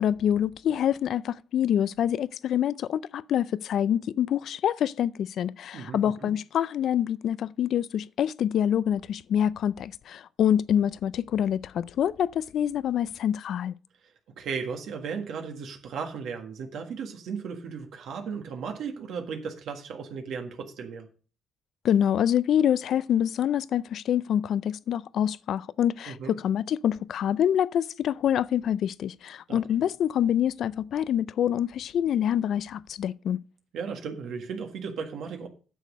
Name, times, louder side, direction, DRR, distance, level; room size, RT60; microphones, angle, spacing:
voice 1, 0.0-13.7 21.8-33.4, left 9 dB, 70° left, 0.4 m, -26 dB
voice 2, 5.7-6.3 14.4-21.1 26.1-26.4 29.5-29.6 33.7-35.5, right 6 dB, 75° right, 1.6 m, -35 dB
9.1 x 6.5 x 5.2 m
cardioid pair, 90°, 0 cm